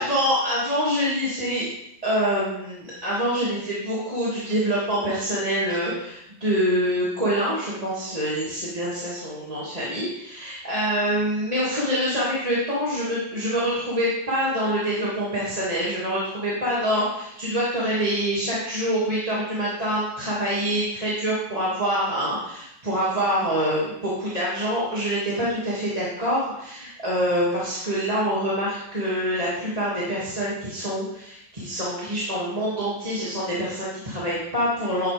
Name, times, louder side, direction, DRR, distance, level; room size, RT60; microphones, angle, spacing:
voice 1, 0.0-1.7 2.0-35.1, equal, 20° right, -8 dB, 2.4 m, -25 dB
12.5 x 8.9 x 3.5 m, 0.81 s
omnidirectional pair, 2.1 m